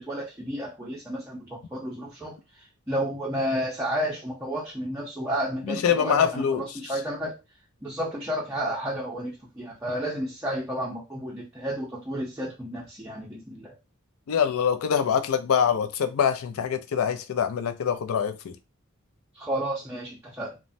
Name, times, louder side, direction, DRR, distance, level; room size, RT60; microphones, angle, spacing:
voice 1, 0.0-7.3 7.8-13.7 19.3-20.6, equal, 10° right, 0.5 m, -32 dB
voice 2, 5.6-6.6 14.3-18.6, left 7 dB, 85° left, 0.4 m, -24 dB
3.1 x 2.1 x 2.6 m
head